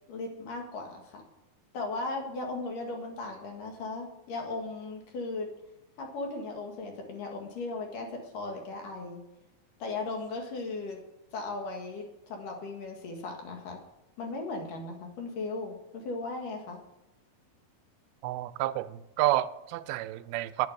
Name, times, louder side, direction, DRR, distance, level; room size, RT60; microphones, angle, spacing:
voice 1, 0.1-1.2 1.7-5.5 6.0-9.2 9.8-11.0 11.3-13.8 14.2-16.8, left 3 dB, 65° left, 3.3 m, -37 dB
voice 2, 18.2-20.7, right 15 dB, 85° right, 2.5 m, -30 dB
10.5 x 9.7 x 7.9 m
omnidirectional pair, 4.3 m